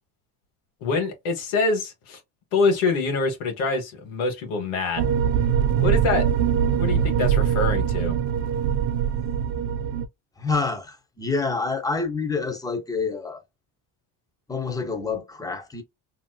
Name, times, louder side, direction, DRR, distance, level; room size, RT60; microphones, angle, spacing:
voice 1, 0.8-2.2 2.5-5.1 5.8-6.3 6.8-8.2, left 3 dB, 85° left, 1.2 m, -25 dB
sound 1, 5.0-10.1, right 8 dB, 75° right, 0.6 m, -22 dB
voice 2, 10.4-13.4 14.5-15.8, left 4 dB, 10° left, 0.9 m, -27 dB
3.2 x 2.8 x 2.2 m
supercardioid pair, 70°, 47 cm